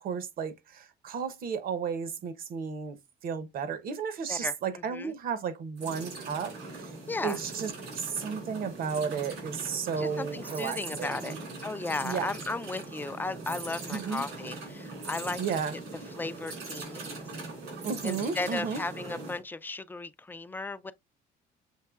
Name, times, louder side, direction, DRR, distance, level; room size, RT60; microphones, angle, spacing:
voice 1, 0.0-3.0 3.2-6.9 7.2-11.4 12.0-12.3 13.9-14.3 15.4-15.7 17.8-18.8, right 6 dB, 60° right, 0.9 m, -33 dB
sound 1, 5.8-19.4, right 3 dB, 90° right, 3.3 m, -41 dB
voice 2, 7.1-7.4 10.0-11.4 11.6-15.4 16.2-17.2 18.0-20.9, left 3 dB, 10° left, 0.4 m, -35 dB
6.5 x 3.0 x 2.3 m
cardioid pair, 110°, 17 cm